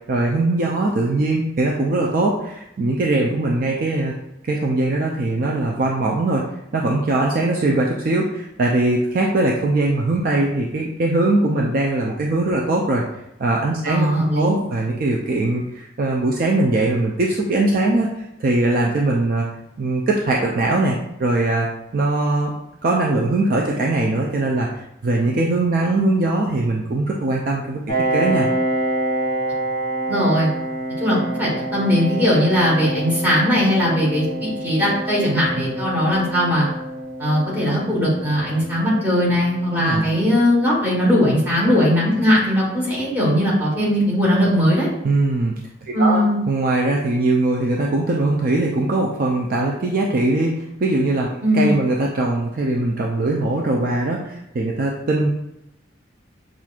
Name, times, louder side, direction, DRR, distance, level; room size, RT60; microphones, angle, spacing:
voice 1, 0.1-4.1 4.4-6.4 6.7-13.0 13.4-14.1 14.4-18.1 18.4-19.4 19.8-21.7 21.9-22.5 22.8-24.7 25.0-27.8 28.1-28.5 39.8-40.1 45.0-45.6 46.0-51.3 51.5-55.3, right 2 dB, 45° right, -2 dB, 0.4 m, -21 dB
voice 2, 13.9-14.6 30.1-30.5 31.0-36.7 37.2-44.9 45.9-46.4 51.4-51.7, equal, 10° right, -7 dB, 1.3 m, -19 dB
Piano, 27.9-43.2, right 1 dB, 25° left, 1.1 m, -28 dB
5.8 x 2.5 x 2.4 m, 0.83 s
head